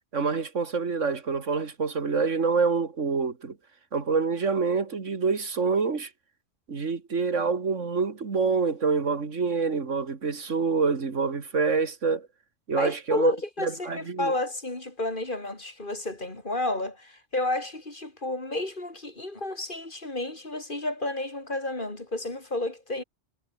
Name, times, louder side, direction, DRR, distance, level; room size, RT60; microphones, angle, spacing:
voice 1, 0.1-3.6 3.9-6.1 6.7-12.3 12.7-13.3 13.6-14.4, right 5 dB, 85° right, 2.4 m, -26 dB
voice 2, 12.7-23.0, left 2 dB, 45° left, 3.8 m, -31 dB
omnidirectional pair, 1.2 m